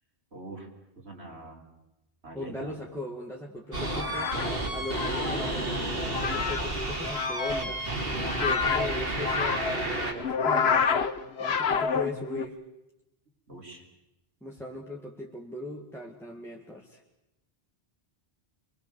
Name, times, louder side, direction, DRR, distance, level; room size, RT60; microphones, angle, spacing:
voice 1, 0.3-0.7 1.0-1.6 2.2-2.8 13.5-13.8, right 2 dB, 80° right, 0 dB, 4.3 m, -43 dB
voice 2, 2.3-4.4 4.7-7.9 8.3-10.9 11.4-12.6 14.4-17.0, left 1 dB, ahead, -1 dB, 2.0 m, -38 dB
sound 1, 3.7-10.1, right 2 dB, 60° right, 3.1 m, -32 dB
sound 2, 3.8-12.5, left 6 dB, 70° left, 1.3 m, -29 dB
24.5 x 23.5 x 7.0 m, 0.91 s
omnidirectional pair, 1.1 m